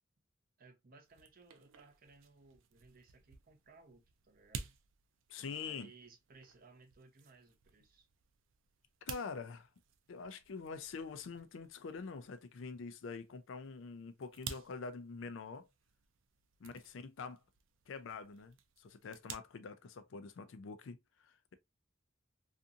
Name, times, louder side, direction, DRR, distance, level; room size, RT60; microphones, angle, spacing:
voice 1, 0.6-4.7 5.4-8.1, right 3 dB, 45° right, 0.7 m, -61 dB
sound 1, 1.0-19.4, right 6 dB, 90° right, 0.4 m, -54 dB
voice 2, 5.3-5.9 9.1-9.7 10.1-15.7 16.6-17.4 17.9-21.5, left 5 dB, 75° left, 0.4 m, -45 dB
2.6 x 2.5 x 2.4 m
head